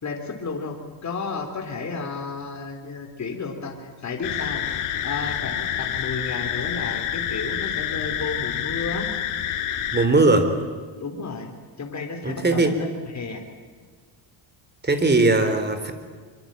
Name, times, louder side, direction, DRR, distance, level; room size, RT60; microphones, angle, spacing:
voice 1, 0.0-4.6 5.0-9.1 11.0-11.5 11.8-12.7 13.1-13.4, left 4 dB, 35° left, 3 dB, 4.0 m, -32 dB
sound 1, 4.2-10.1, left 10 dB, 85° left, 2.4 m, -28 dB
voice 2, 9.9-10.5 12.2-12.7 14.8-15.9, right 2 dB, 20° right, 9 dB, 3.6 m, -19 dB
25.0 x 24.0 x 9.2 m, 1.5 s
cardioid pair, 125°, 49 cm